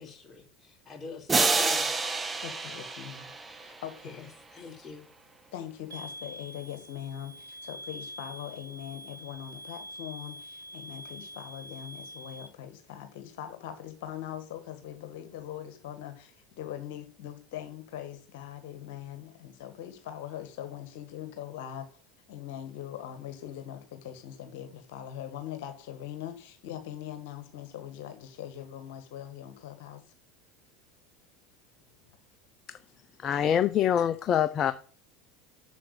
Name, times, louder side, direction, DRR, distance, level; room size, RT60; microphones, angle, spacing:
voice 1, 0.0-1.9 3.5-3.7 4.0-5.1, left 4 dB, 25° left, 3.8 m, -45 dB
sound 1, 1.3-4.0, right 3 dB, 20° right, 1.3 m, -28 dB
voice 2, 2.4-4.3 5.5-21.9 22.3-30.0, left 10 dB, 65° left, 1.6 m, -41 dB
sound 2, 5.9-12.5, equal, 90° right, 1.0 m, -45 dB
voice 3, 33.2-34.7, left 9 dB, 40° left, 0.7 m, -25 dB
7.7 x 7.3 x 6.7 m
hypercardioid pair, 80°, 0 cm